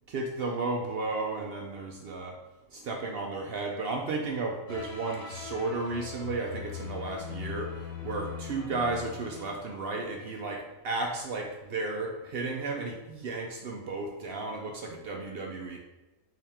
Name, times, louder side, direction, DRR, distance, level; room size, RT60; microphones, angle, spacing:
voice 1, 0.1-2.4 2.7-7.7 8.0-15.8, right 3 dB, 60° right, 1 dB, 0.6 m, -33 dB
sound 1, 4.7-10.4, left 7 dB, 60° left, 1.3 m, -41 dB
5.4 x 2.9 x 3.4 m, 1.1 s
omnidirectional pair, 1.4 m